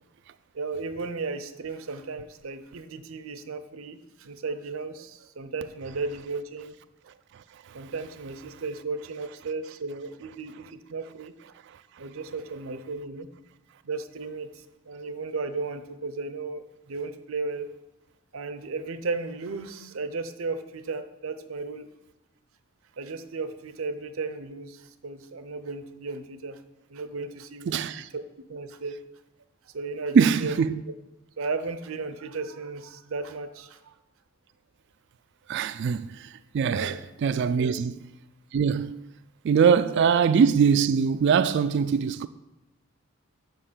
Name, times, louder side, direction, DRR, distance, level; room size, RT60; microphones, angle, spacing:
voice 1, 0.5-6.7 7.7-11.3 12.0-13.3 13.8-17.7 18.3-21.9 23.0-26.6 26.9-28.2 28.5-29.0 29.7-30.6 31.4-33.9 36.7-37.0 37.5-37.8 39.9-40.1, right 4 dB, 75° right, 0.7 m, -35 dB
voice 2, 27.7-28.1 30.1-30.8 35.5-36.9 37.2-38.0 38.5-39.1 39.4-42.3, right 6 dB, 55° right, 0.3 m, -22 dB
6.6 x 5.8 x 7.4 m
head